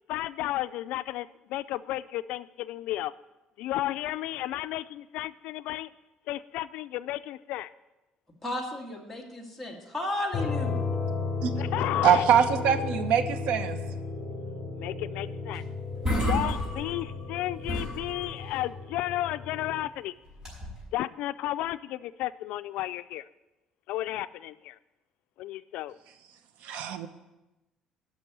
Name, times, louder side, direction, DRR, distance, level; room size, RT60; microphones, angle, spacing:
voice 1, 0.1-3.1 3.6-5.9 6.3-7.7 11.6-12.2 14.8-15.6 16.3-20.1 20.9-23.2 23.9-24.8 25.4-26.0, left 15 dB, 80° left, 14 dB, 0.4 m, -33 dB
voice 2, 8.4-10.7, left 1 dB, 5° left, -2 dB, 1.9 m, -34 dB
sound 1, 10.3-19.8, left 4 dB, 45° left, 4.0 m, -34 dB
voice 3, 12.0-13.8 26.6-27.1, right 8 dB, 80° right, 10 dB, 0.9 m, -23 dB
sound 2, 15.6-15.7 15.9-17.3 17.6-18.6 20.3-20.9, equal, 25° right, 5.3 m, -31 dB
11.5 x 6.0 x 9.2 m, 1.0 s
cardioid pair, 165°, 2 cm